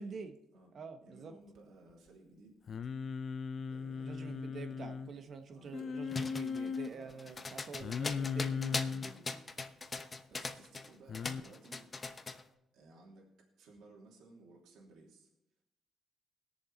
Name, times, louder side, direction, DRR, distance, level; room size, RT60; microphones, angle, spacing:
voice 1, 0.0-0.3 0.7-1.3 4.0-9.1, right 5 dB, 55° right, 7 dB, 1.2 m, -47 dB
voice 2, 1.0-2.5 3.7-4.4 5.5-5.9 6.8-7.3 8.0-10.0 10.3-11.9 12.7-13.3 13.6-15.3, right 2 dB, 80° right, -2 dB, 2.9 m, -58 dB
Singing, 2.7-5.1 5.7-6.9 7.8-9.1 11.1-11.4, left 5 dB, 50° left, 0.5 m, -38 dB
sound 1, 6.1-10.9 11.1-12.4, left 3 dB, 30° left, 1.0 m, -40 dB
20.0 x 7.1 x 4.1 m, 0.90 s
cardioid pair, 90°, 0 cm